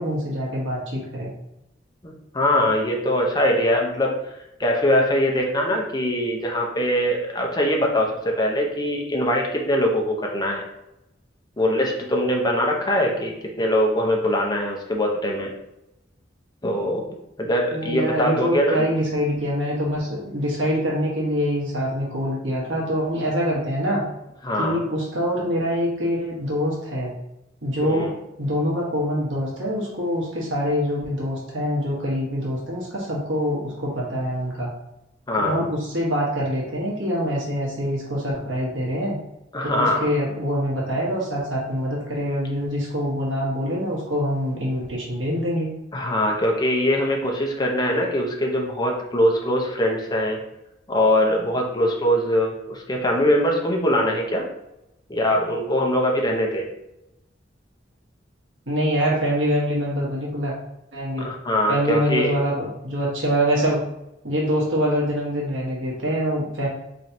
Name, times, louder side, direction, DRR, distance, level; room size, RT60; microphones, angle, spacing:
voice 1, 0.0-1.3 17.7-24.0 24.6-27.1 27.6-28.1 28.4-34.7 35.4-39.1 39.6-45.7 58.7-60.5 60.9-61.3 61.7-63.8 64.2-66.7, equal, 90° right, -4 dB, 1.3 m, -25 dB
voice 2, 2.0-4.1 4.6-10.6 11.6-15.5 16.6-17.1 17.4-18.8 24.4-24.8 27.8-28.1 35.3-35.6 39.5-40.2 45.9-50.4 50.9-54.5 55.1-56.7 61.2-62.4, equal, 20° left, 0 dB, 0.7 m, -22 dB
4.4 x 3.2 x 2.7 m, 0.86 s
head